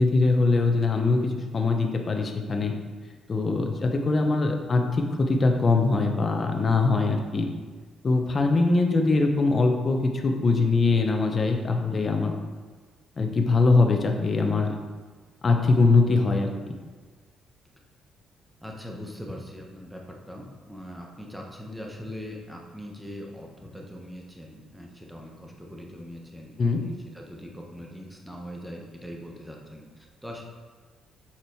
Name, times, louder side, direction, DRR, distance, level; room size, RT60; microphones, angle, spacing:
voice 1, 0.0-2.7 3.3-7.5 8.0-12.3 13.2-14.7 15.4-16.5 26.6-26.8, left 3 dB, 40° left, 3 dB, 0.9 m, -22 dB
voice 2, 18.6-30.4, equal, ahead, -1 dB, 1.2 m, -41 dB
7.4 x 4.0 x 4.6 m, 1.5 s
cardioid pair, 90°, 0 cm